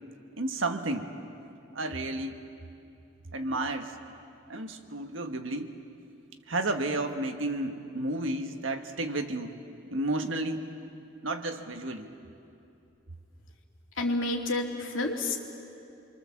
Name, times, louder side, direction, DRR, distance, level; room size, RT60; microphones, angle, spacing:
voice 1, 0.4-1.1 1.7-2.4 3.3-3.9 4.5-5.7 6.5-9.5 9.9-10.7 11.2-12.1, right 2 dB, 75° right, 6 dB, 1.6 m, -32 dB
voice 2, 14.0-15.4, left 2 dB, 80° left, 1 dB, 2.7 m, -29 dB
27.0 x 23.5 x 7.4 m, 2.7 s
head